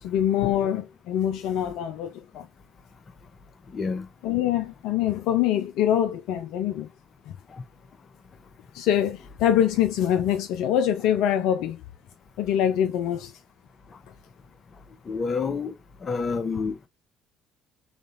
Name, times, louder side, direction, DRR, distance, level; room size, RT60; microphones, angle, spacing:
voice 1, 0.0-2.5 4.2-6.9 8.7-11.8 12.4-13.3, left 10 dB, 65° left, 0.4 m, -24 dB
voice 2, 3.7-4.1 7.5-7.6 15.1-15.7 16.0-16.9, left 5 dB, 35° left, 0.8 m, -28 dB
3.9 x 3.7 x 2.7 m
figure-of-eight pair, 50°, 0 cm